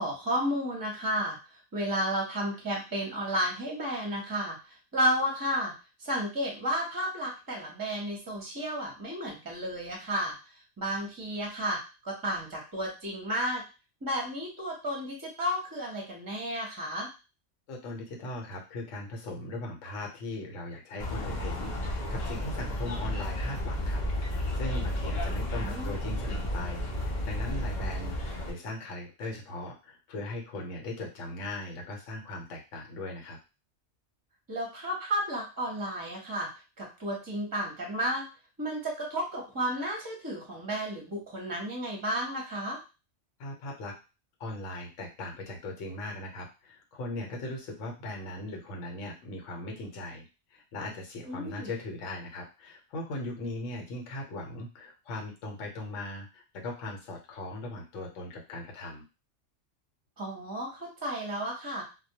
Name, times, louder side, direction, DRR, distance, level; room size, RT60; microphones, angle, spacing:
voice 1, 0.0-1.4 1.7-4.6 4.9-5.7 6.0-10.3 10.8-13.6 14.0-17.1 25.6-25.9 34.5-36.5 36.8-38.3 38.6-42.8 51.2-51.7 60.2-61.8, equal, 20° right, -1 dB, 0.7 m, -32 dB
voice 2, 17.7-33.4 43.4-44.0 44.4-50.2 50.5-59.0, left 2 dB, 80° left, 1 dB, 1.1 m, -39 dB
sound 1, 21.0-28.5, left 1 dB, 45° left, 0.6 m, -32 dB
2.2 x 2.2 x 2.8 m, 0.29 s
omnidirectional pair, 1.3 m